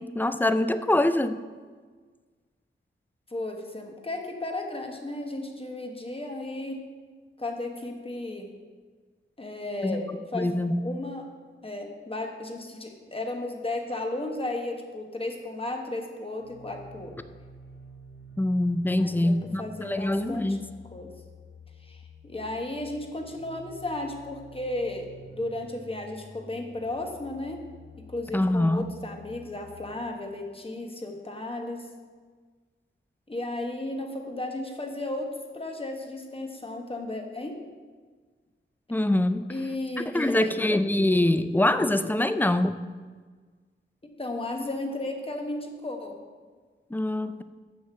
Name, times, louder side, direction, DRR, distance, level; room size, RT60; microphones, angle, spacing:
voice 1, 0.0-1.4 9.8-10.0 10.3-10.8 18.4-20.6 28.3-28.9 38.9-39.5 40.1-42.8 46.9-47.4, left 1 dB, 10° left, 11 dB, 0.4 m, -24 dB
voice 2, 3.3-6.8 7.4-8.5 9.4-10.5 10.8-11.3 11.6-17.1 18.9-20.6 20.9-21.1 21.8-27.6 28.1-31.9 33.3-37.6 39.5-40.7 44.2-46.2, left 2 dB, 25° left, 3 dB, 1.2 m, -34 dB
sound 1, 16.4-30.1, left 1 dB, 60° left, 1.0 m, -49 dB
6.5 x 6.3 x 6.9 m, 1.5 s
wide cardioid pair, 105°, 21 cm